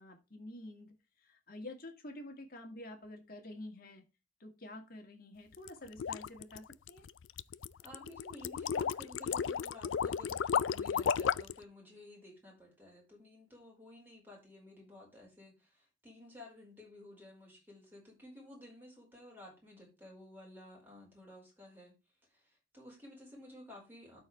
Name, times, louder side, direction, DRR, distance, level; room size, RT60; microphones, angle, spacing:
voice 1, 0.0-4.0 4.4-7.1, left 1 dB, 50° left, 3 dB, 2.1 m, -49 dB
sound 1, 5.5-11.6, left 7 dB, 85° left, 0.4 m, -34 dB
voice 2, 7.8-21.9 22.3-24.2, left 1 dB, 10° right, -1 dB, 4.6 m, -54 dB
12.5 x 4.8 x 3.3 m, 0.27 s
head